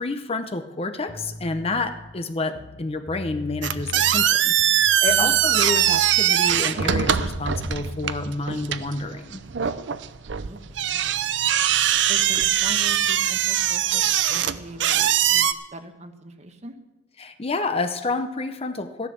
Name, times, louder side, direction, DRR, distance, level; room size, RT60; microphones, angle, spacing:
voice 1, 0.0-9.4 17.2-19.1, left 3 dB, 35° left, 8 dB, 0.7 m, -29 dB
sound 1, 1.1-2.1 2.5-4.3 4.6-6.3 6.6-9.0, left 3 dB, 65° left, 1.2 m, -40 dB
sound 2, 3.6-15.5, right 10 dB, 75° right, 0.6 m, -22 dB
voice 2, 10.4-11.1 12.1-14.0 14.3-16.8, right 2 dB, 40° right, 7 dB, 1.1 m, -41 dB
14.5 x 10.5 x 6.4 m, 1.0 s
head